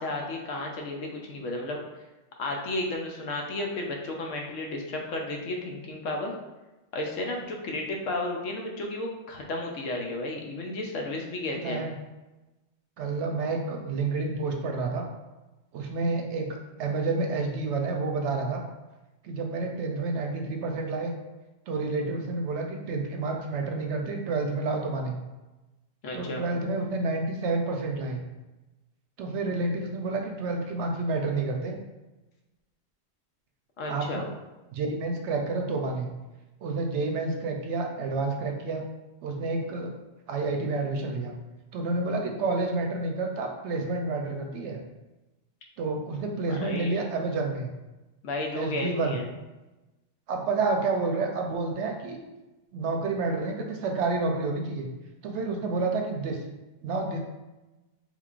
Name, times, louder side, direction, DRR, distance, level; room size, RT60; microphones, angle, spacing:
voice 1, 0.0-1.8 2.4-6.3 6.9-11.8 26.0-26.4 33.8-34.2 46.5-47.0 48.2-49.3, left 2 dB, 85° left, 1 dB, 1.0 m, -33 dB
voice 2, 11.6-11.9 13.0-15.1 15.7-18.6 19.2-21.1 21.7-25.2 26.1-28.2 29.2-31.8 33.9-34.3 34.7-36.1 36.6-38.8 39.2-39.9 40.3-41.3 41.7-44.8 45.8-47.7 48.5-49.2 50.3-52.2 52.7-54.9 55.2-56.4 56.8-57.2, right 3 dB, 70° right, 2 dB, 0.8 m, -29 dB
3.7 x 3.2 x 2.4 m, 1.1 s
omnidirectional pair, 1.3 m